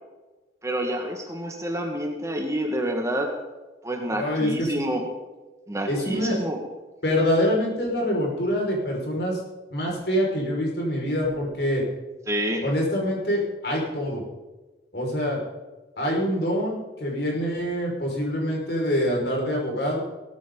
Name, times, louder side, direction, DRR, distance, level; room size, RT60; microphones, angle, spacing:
voice 1, 0.6-3.3 3.8-5.1 5.7-6.6 12.3-12.6, right 1 dB, 15° right, 2 dB, 1.8 m, -28 dB
voice 2, 4.1-4.7 5.9-6.4 7.0-9.4 9.7-11.8 12.6-14.2 14.9-15.4 16.0-20.0, equal, 65° left, -1 dB, 5.6 m, -25 dB
17.5 x 14.0 x 4.0 m, 1.2 s
head